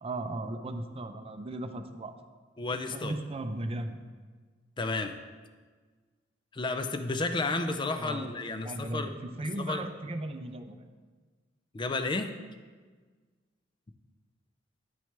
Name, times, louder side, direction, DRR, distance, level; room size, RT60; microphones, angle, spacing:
voice 1, 0.0-2.1 2.9-4.0 8.0-8.3 8.6-10.8, right 1 dB, 30° right, 6 dB, 0.5 m, -36 dB
voice 2, 2.6-3.2 4.8-5.2 6.5-9.1 9.6-9.9 11.7-12.3, left 3 dB, 25° left, 8 dB, 0.4 m, -32 dB
10.5 x 6.2 x 3.3 m, 1.5 s
head